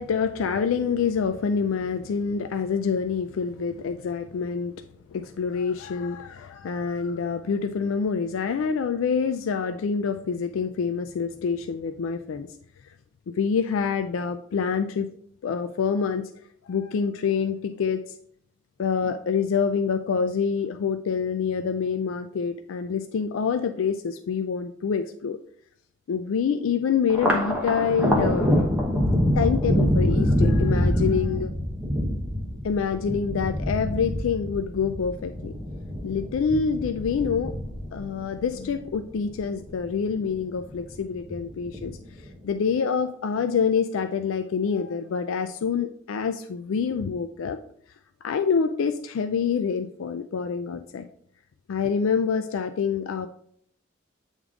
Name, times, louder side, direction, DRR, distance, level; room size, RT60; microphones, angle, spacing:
voice 1, 0.0-4.7 5.1-12.5 13.4-15.1 15.4-16.3 16.7-18.0 18.8-25.4 26.1-28.6 29.4-31.5 32.6-35.5 36.0-37.5 37.9-42.0 42.4-47.6 48.2-51.0 51.7-53.3, left 6 dB, 75° left, 8 dB, 0.4 m, -26 dB
Thunder, 27.1-39.8 40.1-41.0 41.3-42.1, equal, 10° right, 1.0 m, -25 dB
8.1 x 3.6 x 3.6 m, 0.67 s
head